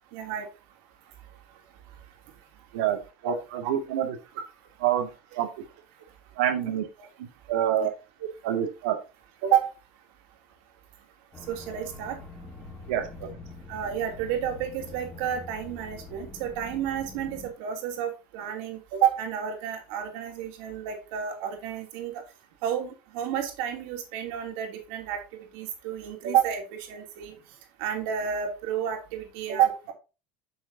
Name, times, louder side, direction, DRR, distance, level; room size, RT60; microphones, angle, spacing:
voice 1, 0.1-0.5 3.2-3.3 3.6-3.7 7.0-7.1 7.8-7.9 9.4-9.7 11.5-12.2 13.7-22.1 22.6-27.3 27.8-29.9, right 9 dB, 65° right, 3 dB, 3.0 m, -30 dB
voice 2, 2.7-4.1 4.8-5.1 5.3-5.5 6.4-6.8 7.5-7.9 8.2-9.0 12.9-13.3, right 10 dB, 85° right, 5 dB, 2.1 m, -27 dB
sound 1, 11.3-17.5, left 3 dB, 15° left, 2.5 m, -44 dB
9.9 x 6.4 x 2.8 m, 0.30 s
supercardioid pair, 145°, 5 cm